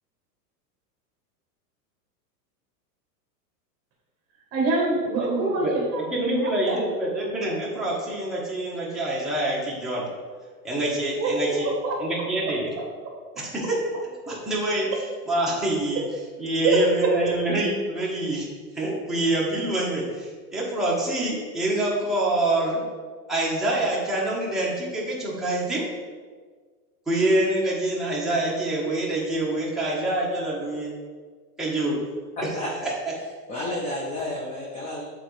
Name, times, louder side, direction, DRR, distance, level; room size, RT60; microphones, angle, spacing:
voice 1, 4.5-6.8 11.2-12.0 12.8-13.2 16.6-17.1, right 2 dB, 30° right, -1 dB, 1.4 m, -25 dB
voice 2, 5.1-5.7 6.1-10.0 10.6-11.7 12.0-12.7 13.3-13.8 14.3-14.9 15.3-16.0 16.4-18.5 18.7-22.8 23.3-25.8 27.1-31.0 31.6-32.0 32.8-32.9, right 1 dB, ahead, -7 dB, 1.3 m, -26 dB
voice 3, 32.4-32.7 33.5-35.0, left 1 dB, 15° left, -3 dB, 0.5 m, -31 dB
7.7 x 3.7 x 3.3 m, 1.5 s
supercardioid pair, 135°, 49 cm